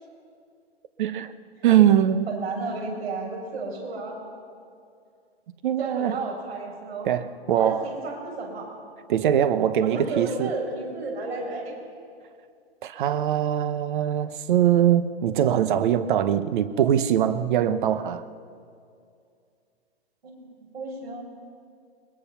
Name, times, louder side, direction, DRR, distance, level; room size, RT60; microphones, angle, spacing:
voice 1, 1.0-1.3 1.6-2.3 5.6-6.2 7.0-7.9 9.1-10.5 12.8-18.2, right 10 dB, 50° right, 12 dB, 1.1 m, -22 dB
voice 2, 2.3-4.1 5.8-7.1 7.6-8.7 9.8-11.8 20.2-21.2, right 3 dB, 70° right, 0 dB, 6.9 m, -32 dB
22.0 x 21.0 x 5.8 m, 2.3 s
hypercardioid pair, 130°, 32 cm